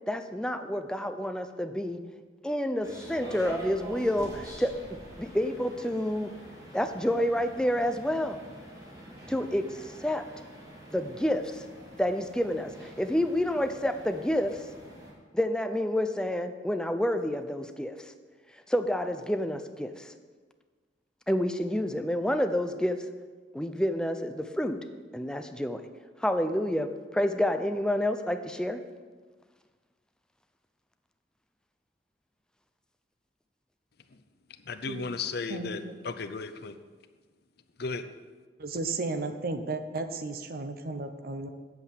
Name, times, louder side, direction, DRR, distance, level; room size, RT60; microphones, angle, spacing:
voice 1, 0.1-2.0 2.4-6.3 6.7-8.4 9.3-10.3 10.9-11.6 12.0-14.6 15.3-18.0 18.7-20.1 21.3-23.0 23.5-24.8 25.1-25.8 26.2-28.8, left 1 dB, 5° left, 8 dB, 0.5 m, -29 dB
sound 1, 2.8-15.1, equal, 20° right, 2.7 m, -45 dB
voice 2, 34.5-36.8 37.8-38.0, left 4 dB, 60° left, 10 dB, 0.6 m, -35 dB
voice 3, 38.6-41.5, right 3 dB, 55° right, 9 dB, 0.8 m, -33 dB
8.2 x 8.0 x 7.2 m, 1.4 s
head